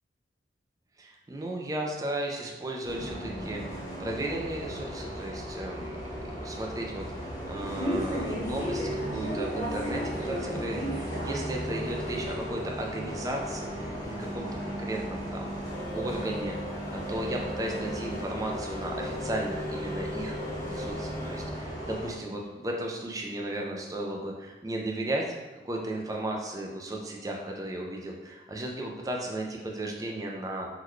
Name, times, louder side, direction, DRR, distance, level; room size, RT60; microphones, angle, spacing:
voice 1, 1.0-5.9 6.4-15.6 15.9-25.2 25.6-30.7, right 1 dB, 20° right, 0 dB, 0.3 m, -35 dB
Bus, 2.8-22.1, equal, 20° left, 0.7 m, -35 dB
sound 1, 15.7-21.5, equal, 80° left, 0.6 m, -42 dB
3.8 x 2.2 x 3.1 m, 1.2 s
head